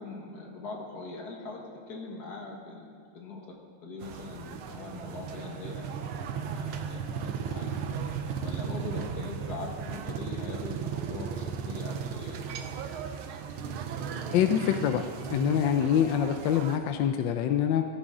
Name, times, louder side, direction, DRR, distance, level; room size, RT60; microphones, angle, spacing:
voice 1, 0.0-7.7 8.0-8.1 8.4-12.4, left 3 dB, 50° left, 0 dB, 2.1 m, -41 dB
sound 1, 4.0-16.8, right 7 dB, 85° right, 1.7 m, -36 dB
voice 2, 14.3-17.9, left 9 dB, 75° left, 7 dB, 1.2 m, -25 dB
15.0 x 14.0 x 3.8 m, 2.1 s
omnidirectional pair, 2.2 m